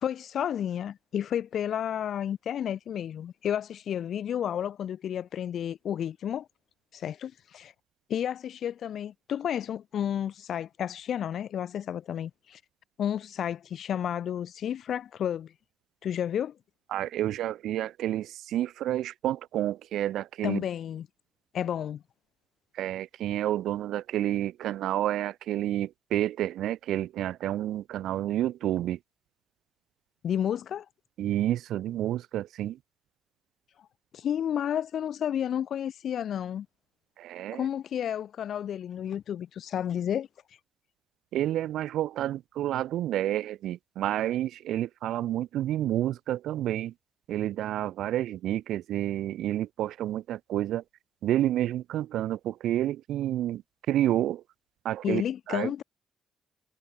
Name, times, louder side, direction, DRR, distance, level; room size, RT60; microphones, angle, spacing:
voice 1, 0.0-6.5 6.9-7.7 8.1-12.6 13.0-15.5 16.0-16.6 20.4-21.1 21.5-22.0 30.2-30.8 34.1-36.7 37.5-40.3 55.0-55.8, left 9 dB, 65° left, 4.5 m, -31 dB
voice 2, 16.9-20.6 22.7-29.0 31.2-32.8 37.2-37.7 41.3-46.9 47.3-50.8 51.2-53.6 53.9-54.4 54.8-55.2 55.5-55.7, right 13 dB, 80° right, 4.4 m, -29 dB
cardioid pair, 90°, 0 cm